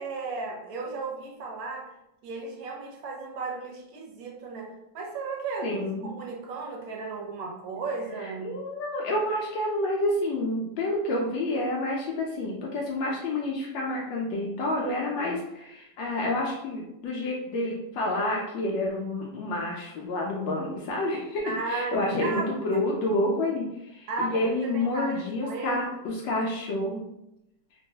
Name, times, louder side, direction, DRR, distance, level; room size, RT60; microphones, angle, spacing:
voice 1, 0.0-1.9 2.2-8.5 21.4-22.5 22.7-22.8 24.1-25.8, right 4 dB, 60° right, -1 dB, 1.0 m, -35 dB
voice 2, 5.6-6.1 8.2-27.0, left 1 dB, 80° left, -2 dB, 1.3 m, -29 dB
3.6 x 2.3 x 2.7 m, 0.87 s
omnidirectional pair, 2.1 m